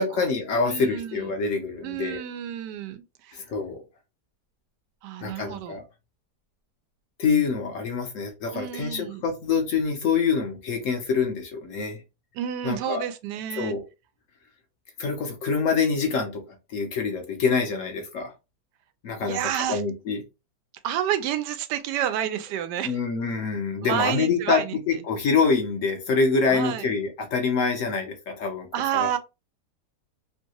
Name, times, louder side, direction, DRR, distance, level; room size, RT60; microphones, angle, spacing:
voice 1, 0.0-2.2 3.3-3.8 5.2-5.8 7.2-12.0 12.6-13.0 13.6-13.9 15.0-16.4 16.7-18.3 19.0-20.2 22.8-24.6 24.9-28.7 28.9-29.1, left 5 dB, 60° left, 0.9 m, -25 dB
voice 2, 0.6-1.3 1.8-3.4 5.0-5.8 8.5-9.2 12.3-13.7 19.2-19.8 20.8-23.0 23.8-25.0 26.5-26.9 28.7-29.2, right 10 dB, 90° right, 1.2 m, -30 dB
3.2 x 2.6 x 2.8 m
omnidirectional pair, 1.8 m